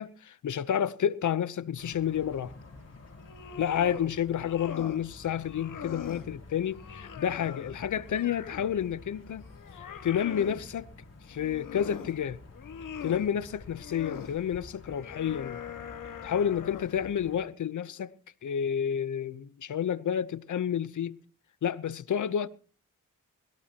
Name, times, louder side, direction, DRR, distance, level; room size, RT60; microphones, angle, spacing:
voice 1, 0.0-2.5 3.6-9.4 10.0-10.9 11.3-12.4 13.0-15.6 16.2-18.1 18.4-21.2 21.6-22.5, left 9 dB, 65° left, 0.9 m, -30 dB
sound 1, 1.8-17.4, left 3 dB, 50° left, 4.4 m, -50 dB
sound 2, 3.2-4.1 4.4-5.0 5.4-6.3 6.7-8.8 9.2-10.6 11.3-12.2 12.5-13.3 13.8-14.4 14.9-17.0, left 8 dB, 85° left, 1.7 m, -42 dB
21.0 x 17.0 x 3.0 m
cardioid pair, 75°, 32 cm